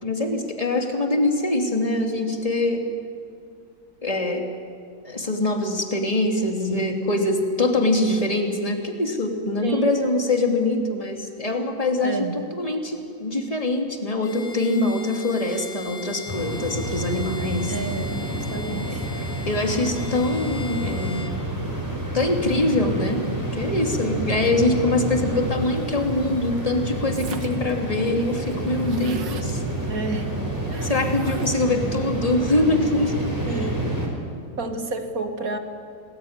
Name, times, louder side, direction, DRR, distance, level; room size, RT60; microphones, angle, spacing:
voice 1, 0.0-2.9 4.0-4.5 5.0-17.7 18.9-19.0 19.5-21.2 22.1-23.3 23.5-29.6 30.8-33.1 33.5-33.7, left 2 dB, 20° left, 3 dB, 2.7 m, -24 dB
voice 2, 9.6-10.0 12.0-12.4 17.7-19.1 29.9-30.3 30.7-30.9 31.7-32.0 33.5-33.9 34.6-35.6, right 2 dB, 50° right, 6 dB, 2.4 m, -30 dB
Bowed string instrument, 14.2-21.4, left 3 dB, 60° left, 2.2 m, -40 dB
sound 1, 16.3-34.1, right 1 dB, 10° right, 5.5 m, -29 dB
sound 2, 27.1-27.7 28.1-28.2 28.3-29.5 30.7-31.8, right 6 dB, 90° right, 2.1 m, -41 dB
28.5 x 20.0 x 9.5 m, 2.3 s
omnidirectional pair, 1.9 m